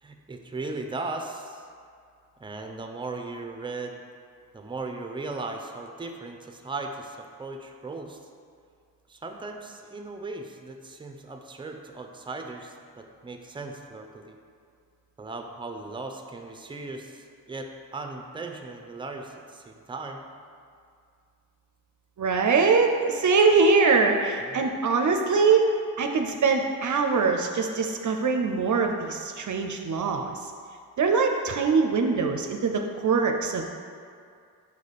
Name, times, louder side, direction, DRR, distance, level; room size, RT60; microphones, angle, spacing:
voice 1, 0.0-1.7 2.4-4.0 4.5-8.2 9.1-14.3 15.2-20.2 24.4-24.7, right 3 dB, 15° right, 3 dB, 0.6 m, -37 dB
voice 2, 22.2-25.7 26.0-30.3 31.0-33.7, right 4 dB, 50° right, 3 dB, 0.6 m, -23 dB
5.5 x 4.8 x 4.1 m, 2.2 s
cardioid pair, 60°, 37 cm